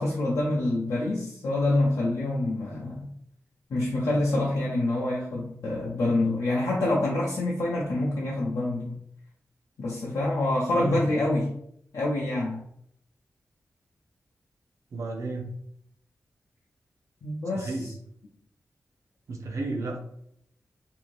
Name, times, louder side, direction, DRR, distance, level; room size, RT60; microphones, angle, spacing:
voice 1, 0.0-3.1 3.7-9.0 9.8-11.5 11.9-12.6 17.2-17.9, left 2 dB, 70° left, -5 dB, 0.5 m, -26 dB
voice 2, 14.9-15.5 17.6-17.9 19.3-20.0, right 3 dB, 70° right, 0 dB, 0.6 m, -32 dB
2.7 x 2.5 x 3.1 m, 0.71 s
wide cardioid pair, 175°, 6 cm